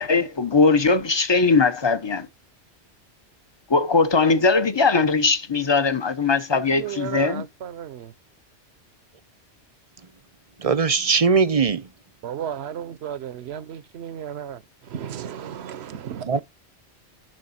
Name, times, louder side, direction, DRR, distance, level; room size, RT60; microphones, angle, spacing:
voice 1, 0.0-2.3 3.7-7.4, left 4 dB, 25° left, 0.9 m, -20 dB
voice 2, 6.5-8.1 12.2-16.4, right 9 dB, 70° right, 1.0 m, -34 dB
voice 3, 10.6-11.9 16.3-16.4, right 5 dB, 40° right, 0.7 m, -20 dB
11.0 x 5.7 x 4.3 m
omnidirectional pair, 1.2 m